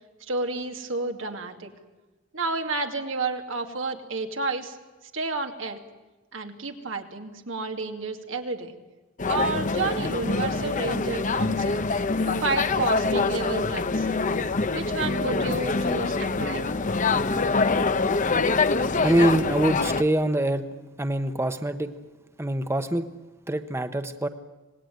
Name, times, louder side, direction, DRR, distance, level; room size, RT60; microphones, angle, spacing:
voice 1, 0.3-1.7 2.3-4.8 5.1-5.8 6.3-8.7 9.3-11.8 12.2-14.1 14.7-16.7, right 3 dB, 85° right, 4 dB, 2.6 m, -30 dB
sound 1, 9.2-20.0, left 3 dB, 40° left, 0.8 m, -25 dB
voice 2, 18.8-20.7 21.0-21.9 22.4-23.1 23.5-24.3, right 1 dB, 15° right, 8 dB, 1.0 m, -24 dB
26.0 x 19.0 x 9.4 m, 1.2 s
head